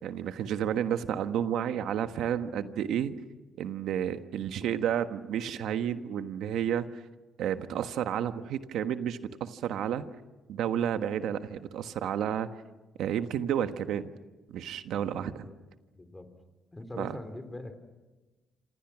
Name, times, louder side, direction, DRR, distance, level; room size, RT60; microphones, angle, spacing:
voice 1, 0.0-3.1 3.6-7.0 7.4-10.0 10.5-12.5 13.0-14.1 14.5-15.3 17.0-17.1, right 9 dB, 80° right, 9 dB, 1.3 m, -31 dB
voice 2, 15.1-15.6 15.9-16.3 16.7-17.8, left 2 dB, 15° left, 8 dB, 3.8 m, -42 dB
27.5 x 27.0 x 6.2 m, 1.2 s
cardioid pair, 90°, 0 cm